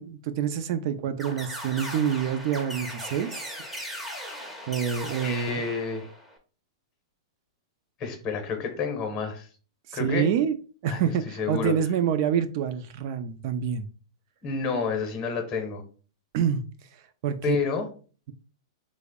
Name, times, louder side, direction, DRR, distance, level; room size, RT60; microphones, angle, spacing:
voice 1, 0.0-3.5 4.7-5.6 9.9-10.6 10.8-13.9 16.3-16.6 17.2-17.6, right 8 dB, 45° right, 0.4 m, -27 dB
sound 1, 1.2-6.4, equal, 5° right, 0.6 m, -38 dB
voice 2, 5.2-6.1 8.0-9.5 9.9-10.3 10.9-11.1 11.4-11.7 14.4-15.8 17.4-17.9, left 5 dB, 25° left, 0.8 m, -29 dB
3.3 x 2.0 x 3.5 m
hypercardioid pair, 150°, 3 cm